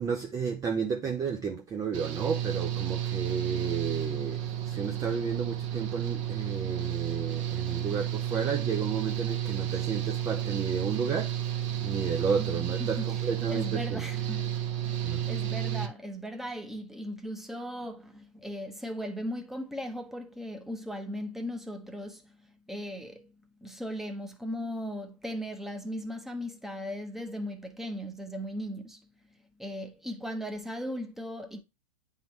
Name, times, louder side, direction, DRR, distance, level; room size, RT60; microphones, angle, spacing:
voice 1, 0.0-11.3 11.8-14.0 15.0-15.3, right 6 dB, 15° right, 0.6 m, -32 dB
Engine / Mechanical fan, 1.9-15.9, right 10 dB, 55° right, 1.3 m, -32 dB
voice 2, 12.4-13.1 13.5-14.5 14.9-22.4 22.7-23.3 23.6-29.1 29.6-31.6, equal, ahead, 0.9 m, -37 dB
9.2 x 3.8 x 3.1 m
hypercardioid pair, 130°, 19 cm